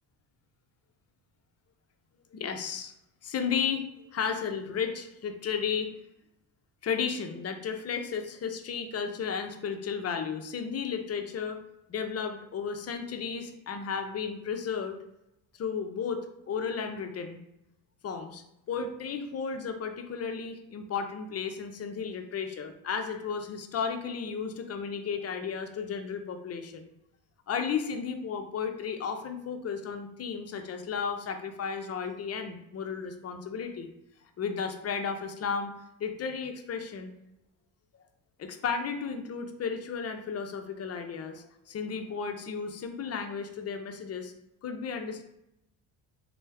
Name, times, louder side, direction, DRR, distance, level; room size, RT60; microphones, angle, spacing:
voice 1, 2.3-2.9 3.2-3.9 4.1-5.9 6.8-11.6 11.9-15.0 15.6-17.4 18.0-26.9 27.5-33.9 34.4-35.7 36.0-37.1 38.4-44.3 44.6-45.2, left 6 dB, 35° left, 6 dB, 0.5 m, -34 dB
3.2 x 2.1 x 3.3 m, 0.85 s
supercardioid pair, 70°, 46 cm